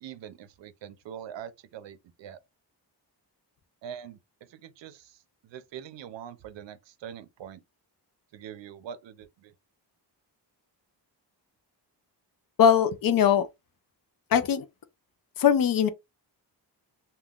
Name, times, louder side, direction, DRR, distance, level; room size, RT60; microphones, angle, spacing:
voice 1, 0.0-2.4 3.8-4.2 4.5-5.2 5.4-7.6 8.3-9.5, right 9 dB, 85° right, 0.5 m, -43 dB
voice 2, 12.6-13.5 14.3-14.7 15.4-15.9, left 8 dB, 55° left, 0.4 m, -21 dB
3.5 x 2.2 x 2.3 m
wide cardioid pair, 155°, 43 cm